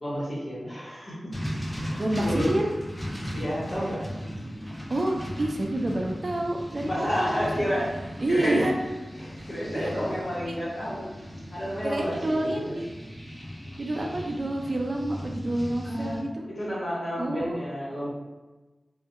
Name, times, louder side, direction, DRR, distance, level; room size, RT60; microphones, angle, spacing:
voice 1, 0.0-1.3 1.7-2.5 3.3-4.0 6.8-7.9 8.3-8.7 9.2-11.0 11.5-12.7 15.9-18.1, equal, 40° left, -7 dB, 1.0 m, -31 dB
sound 1, 1.3-16.2, equal, 10° left, 0.5 m, -37 dB
voice 2, 2.0-2.7 4.9-7.7 8.2-8.7 9.7-9.9 10.4-10.5 11.8-12.9 13.8-16.4 17.2-17.6, right 1 dB, 45° right, 1 dB, 0.4 m, -28 dB
2.2 x 2.1 x 2.8 m, 1.2 s
wide cardioid pair, 85°, 0 cm